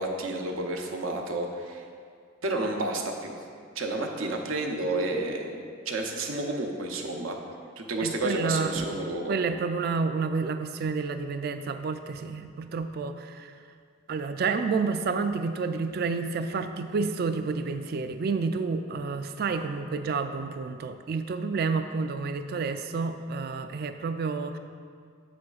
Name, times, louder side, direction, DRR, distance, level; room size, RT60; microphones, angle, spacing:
voice 1, 0.0-1.8 2.4-3.4 3.7-7.4 7.8-9.3, right 2 dB, 85° right, 2 dB, 0.7 m, -31 dB
voice 2, 8.0-8.8 9.3-13.5 14.1-24.6, right 4 dB, 50° right, 9 dB, 0.3 m, -29 dB
7.8 x 7.6 x 2.4 m, 2.1 s
head